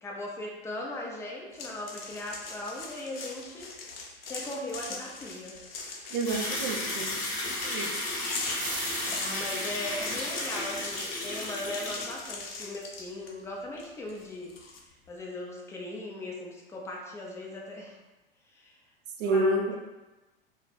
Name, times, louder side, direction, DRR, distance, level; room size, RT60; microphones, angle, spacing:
voice 1, 0.0-3.7 4.3-5.6 9.1-14.6 15.1-18.0 18.5-18.8 19.2-19.8, left 1 dB, 10° left, -1 dB, 0.3 m, -38 dB
sound 1, 1.5-9.3 9.9-13.4 13.8-14.8, left 4 dB, 80° left, 0.5 m, -41 dB
voice 2, 6.1-7.1 7.6-7.9 19.2-19.8, right 2 dB, 60° right, 3 dB, 0.5 m, -28 dB
sound 2, 6.2-12.6 12.8-13.0, left 2 dB, 55° left, 0.8 m, -34 dB
sound 3, 8.6-10.1, right 2 dB, 30° right, 0.7 m, -39 dB
2.1 x 2.0 x 3.0 m, 1.1 s
hypercardioid pair, 90°, 29 cm